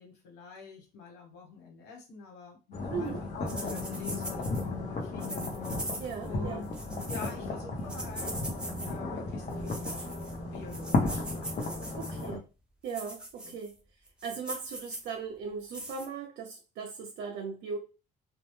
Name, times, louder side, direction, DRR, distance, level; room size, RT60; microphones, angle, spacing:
voice 1, 0.0-5.5 6.2-6.7 7.1-8.4 8.8-10.0 10.5-12.3 13.4-13.6, left 4 dB, 90° left, 0 dB, 1.1 m, -47 dB
sound 1, 2.7-12.4, left 2 dB, 45° left, 0.8 m, -34 dB
sound 2, 3.5-4.6 5.2-6.3 6.6-7.3 7.9-8.9 9.5-10.4 10.7-12.3 12.9-13.7 14.1-15.1 15.7-16.1, right 1 dB, 5° right, 0.5 m, -41 dB
voice 2, 6.0-6.6 12.0-12.4 12.8-13.8 14.2-17.8, right 5 dB, 70° right, 3 dB, 0.5 m, -38 dB
2.2 x 2.1 x 3.0 m, 0.31 s
cardioid pair, 110°, 17 cm